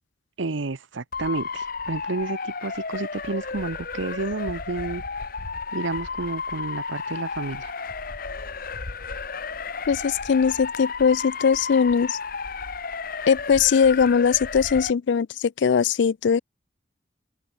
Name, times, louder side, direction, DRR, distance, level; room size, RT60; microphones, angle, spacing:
voice 1, 0.4-5.0 5.7-7.7, right 3 dB, 85° right, 0.9 m, -30 dB
Motor vehicle (road) / Siren, 1.1-14.9, left 4 dB, 50° left, 1.2 m, -33 dB
voice 2, 9.9-12.2 13.3-16.4, left 6 dB, 70° left, 0.4 m, -20 dB
head